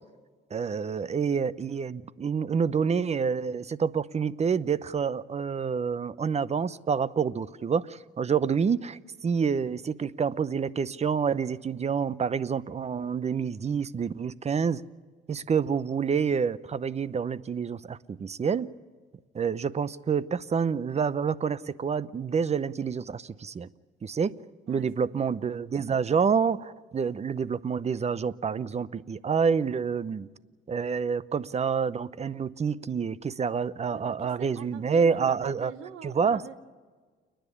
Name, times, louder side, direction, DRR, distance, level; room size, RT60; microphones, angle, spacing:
voice 1, 0.5-14.8 15.3-18.7 19.3-23.7 24.0-24.3 24.7-30.3 30.7-35.7 36.0-36.4, right 6 dB, 35° right, 18 dB, 0.7 m, -28 dB
voice 2, 24.7-25.4 33.9-34.0 34.4-36.6, right 9 dB, 85° right, 10 dB, 1.5 m, -44 dB
29.5 x 10.5 x 9.9 m, 1.5 s
cardioid pair, 90°, 20 cm